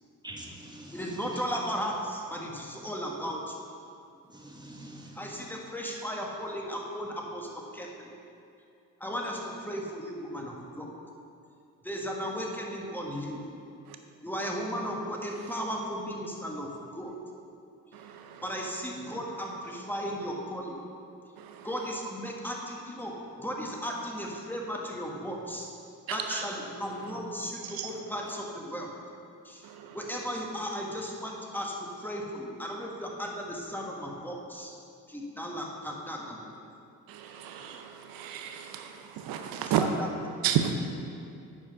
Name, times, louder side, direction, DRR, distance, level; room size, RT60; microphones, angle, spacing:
voice 1, 0.2-1.5 4.3-5.5, right 1 dB, 10° right, -1 dB, 1.4 m, -45 dB
voice 2, 0.9-3.5 5.1-8.1 9.0-10.9 11.8-13.4 14.2-17.1 18.4-20.8 21.6-23.1 23.4-25.7 26.1-28.9 29.4-29.6 29.9-34.7 35.1-36.4 39.7-40.1 40.4-40.5, equal, 5° left, -1 dB, 1.4 m, -35 dB
voice 3, 17.9-18.4 21.4-21.7 26.1-26.4 27.6-27.9 29.6-30.0 37.1-39.8 40.4-40.7, right 10 dB, 85° right, 5 dB, 0.6 m, -32 dB
8.6 x 4.9 x 5.2 m, 2.5 s
cardioid pair, 70°, 34 cm